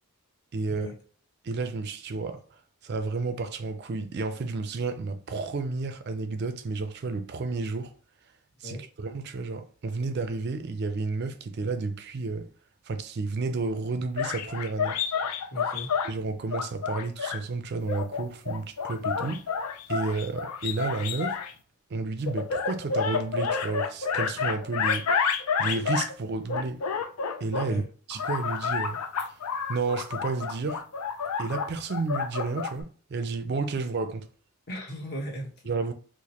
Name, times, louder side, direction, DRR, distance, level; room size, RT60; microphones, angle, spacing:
voice 1, 0.5-0.9 1.4-7.9 8.6-12.5 12.8-15.0 16.0-19.5 19.9-21.4 21.9-25.1 25.6-26.8 27.4-27.8 28.1-29.4 29.7-30.9 31.4-34.3 35.7-35.9, right 3 dB, 50° right, 0.4 m, -31 dB
sound 1, 14.2-16.1 16.5-17.4 17.9-21.5 22.3-26.1 26.5-27.7 28.1-32.8, left 6 dB, 85° left, 0.5 m, -29 dB
voice 2, 15.5-15.9 27.6-27.9 34.7-35.7, equal, 45° left, 1.2 m, -37 dB
4.8 x 2.0 x 2.9 m
head